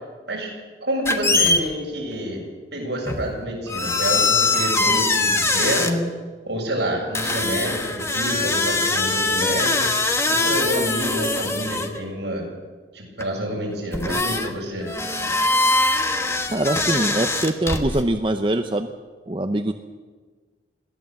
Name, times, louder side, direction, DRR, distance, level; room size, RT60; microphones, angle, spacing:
voice 1, 0.8-2.4 2.7-6.1 6.5-9.9 10.3-12.5 12.9-14.9, equal, 70° right, -1 dB, 7.2 m, -28 dB
sound 1, 1.0-1.6 3.1-3.3 3.7-5.9 7.1-12.0 13.2-13.3 13.9-14.5 14.8-18.0, left 3 dB, 15° left, 1.2 m, -22 dB
voice 2, 16.5-18.9 19.3-19.7, right 1 dB, 25° right, 6 dB, 0.7 m, -23 dB
21.5 x 16.5 x 7.7 m, 1.4 s
head